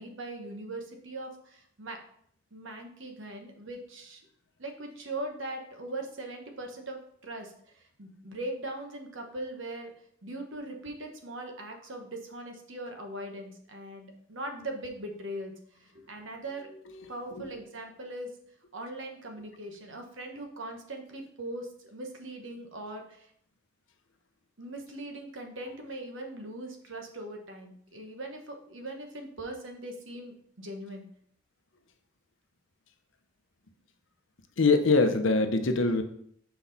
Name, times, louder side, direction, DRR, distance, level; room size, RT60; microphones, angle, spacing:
voice 1, 0.0-2.0 2.5-4.2 4.6-9.9 10.2-15.5 15.8-16.7 17.1-18.3 18.7-23.3 24.6-31.1, right 1 dB, 65° right, 3 dB, 1.1 m, -40 dB
voice 2, 34.6-36.0, left 3 dB, 70° left, 7 dB, 0.7 m, -23 dB
6.1 x 4.7 x 4.0 m, 0.66 s
head